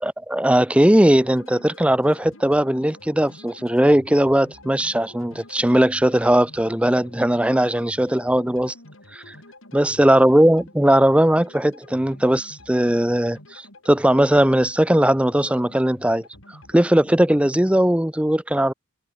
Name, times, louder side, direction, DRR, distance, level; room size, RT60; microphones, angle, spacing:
voice 1, 0.0-8.7 9.1-9.4 9.7-18.7, right 1 dB, 5° right, 0.5 m, -19 dB
sound 1, 1.1-17.9, left 1 dB, 70° left, 7.5 m, -47 dB
head